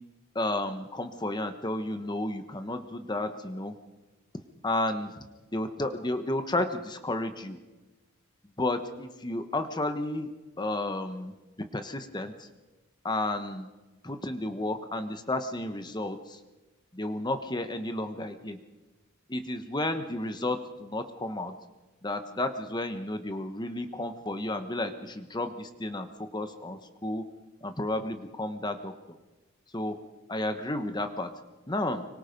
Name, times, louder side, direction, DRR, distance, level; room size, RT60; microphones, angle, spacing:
voice 1, 0.3-3.7 4.6-5.1 5.5-7.6 8.6-10.3 10.6-11.3 11.6-12.5 13.0-13.7 14.0-16.4 16.9-18.6 19.3-21.6 22.0-27.2 27.6-28.9 29.7-30.0 30.3-31.3 31.7-32.0, left 1 dB, 20° left, 8 dB, 1.2 m, -32 dB
25.5 x 23.5 x 5.3 m, 1.2 s
head